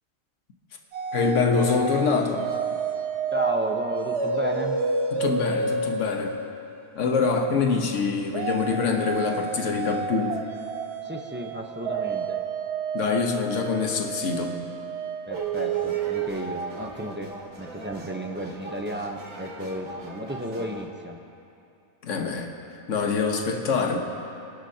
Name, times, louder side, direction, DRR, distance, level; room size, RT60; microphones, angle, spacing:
sound 1, 0.9-7.1 8.3-16.3, right 5 dB, 55° right, 1.1 m, -30 dB
voice 1, 1.1-2.5 5.1-6.4 6.9-10.4 12.9-14.6 22.0-22.5 22.9-24.0, left 5 dB, 65° left, 3 dB, 1.4 m, -25 dB
voice 2, 3.3-4.8 11.0-12.4 15.3-17.3 17.6-21.2, equal, 10° right, 2 dB, 0.6 m, -33 dB
sound 2, 15.3-20.9, right 2 dB, 80° right, 2.0 m, -40 dB
25.0 x 12.0 x 2.8 m, 2.6 s
omnidirectional pair, 1.4 m